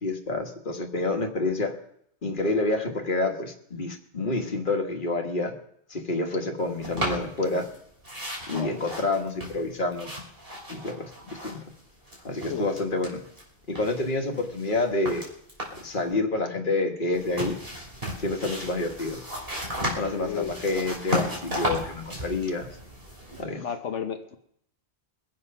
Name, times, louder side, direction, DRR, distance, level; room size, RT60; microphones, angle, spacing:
voice 1, 0.0-1.7 2.2-5.5 5.9-7.7 8.5-10.1 10.7-11.6 12.2-13.2 13.7-15.3 15.8-17.6 18.2-19.2 19.9-22.7 23.4-23.6, left 2 dB, 45° left, 3 dB, 1.7 m, -28 dB
sound 1, 6.8-7.8 8.0-11.8 12.0-13.4 13.8-16.0 17.1-23.4, left 1 dB, 55° right, 3.4 m, -34 dB
voice 2, 12.5-12.8 20.1-20.5 23.6-24.4, left 8 dB, 85° left, 5 dB, 1.2 m, -33 dB
22.5 x 7.8 x 5.5 m, 0.70 s
omnidirectional pair, 1.2 m